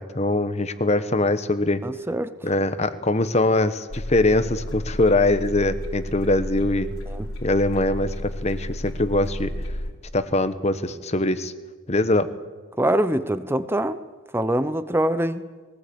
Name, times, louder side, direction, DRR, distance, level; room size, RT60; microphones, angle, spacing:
voice 1, 0.0-1.8 2.4-6.9 7.4-9.5 10.1-11.5 11.9-12.3, left 2 dB, 30° left, 12 dB, 1.1 m, -22 dB
voice 2, 1.8-2.3 7.1-7.3 12.8-14.0 14.3-15.5, right 1 dB, 10° right, 12 dB, 0.7 m, -24 dB
sound 1, 3.9-9.9, left 1 dB, 85° left, 3.8 m, -32 dB
22.0 x 19.0 x 8.7 m, 1.4 s
head